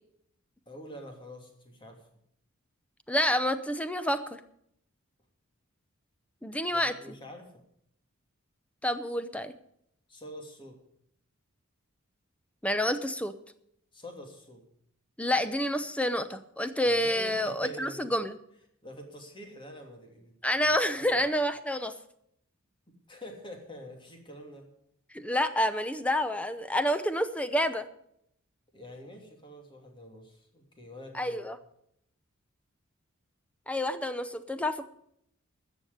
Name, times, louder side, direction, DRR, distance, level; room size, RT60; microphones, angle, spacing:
voice 1, 0.7-2.1 6.7-7.6 10.1-10.8 13.9-14.6 16.9-18.1 18.8-20.3 20.7-21.2 22.9-24.7 28.7-31.5, equal, 25° left, 2 dB, 2.8 m, -46 dB
voice 2, 3.1-4.4 6.4-7.2 8.8-9.5 12.6-13.3 15.2-18.4 20.4-21.9 25.1-27.9 31.1-31.6 33.7-34.8, left 1 dB, 5° left, 11 dB, 0.7 m, -28 dB
14.0 x 7.0 x 9.3 m, 0.72 s
head